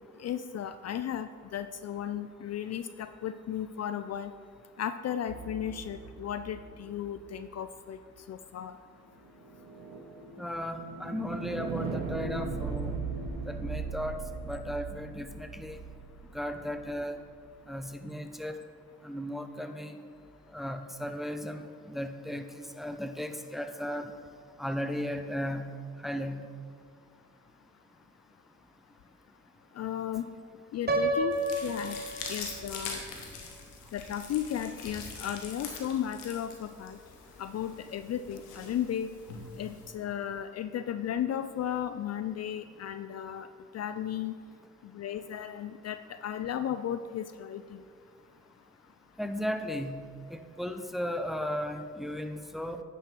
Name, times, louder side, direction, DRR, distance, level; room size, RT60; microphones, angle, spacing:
voice 1, 0.2-4.3 4.8-8.0 8.3-8.7 29.8-30.3 30.7-31.3 31.6-32.0 32.3-33.0 33.9-37.0 37.4-39.1 39.6-43.5 43.7-44.3 44.9-47.6, left 10 dB, 45° left, 11 dB, 0.4 m, -35 dB
sound 1, 5.3-7.4 9.3-17.3, right 4 dB, 65° right, 1.0 m, -39 dB
voice 2, 10.4-12.9 13.5-15.8 16.3-17.2 17.7-18.6 19.0-19.9 20.5-22.4 22.8-24.1 24.6-25.6 26.0-26.4 49.2-49.9 50.3-52.8, equal, ahead, 7 dB, 0.7 m, -35 dB
Piano, 30.9-32.8, right 2 dB, 30° right, 1.1 m, -30 dB
sound 2, 31.3-39.9, left 4 dB, 85° left, 1.2 m, -44 dB
9.6 x 5.5 x 4.4 m, 2.2 s
hypercardioid pair, 50°, 35 cm